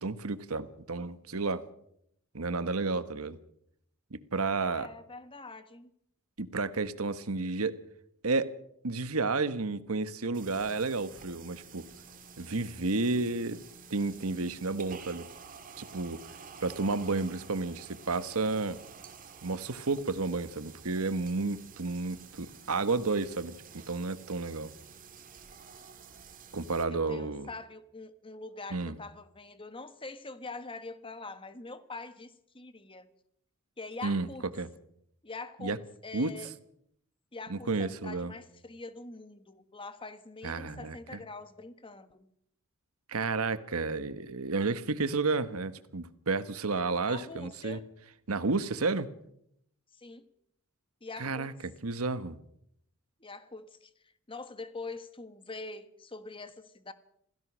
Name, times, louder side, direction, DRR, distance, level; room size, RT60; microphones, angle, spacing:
voice 1, 0.0-1.6 2.3-3.4 4.1-4.9 6.4-7.8 8.2-8.5 8.8-11.9 12.4-13.6 13.9-15.3 15.8-16.3 16.6-18.8 19.4-24.7 26.5-27.5 28.7-28.9 34.0-34.3 34.6-34.7 35.6-35.8 36.1-36.3 37.5-38.3 40.4-41.2 43.1-47.8 48.3-49.1 51.2-52.4, right 3 dB, 85° right, 1.3 m, -31 dB
voice 2, 4.6-5.9 26.9-33.1 33.8-34.5 35.2-36.5 37.3-42.3 47.0-47.8 49.9-50.3 51.0-51.5 53.2-53.9 54.3-56.9, left 3 dB, 25° left, 1.4 m, -44 dB
sound 1, 10.3-26.8, right 6 dB, 40° right, 2.4 m, -50 dB
27.0 x 16.5 x 6.3 m
head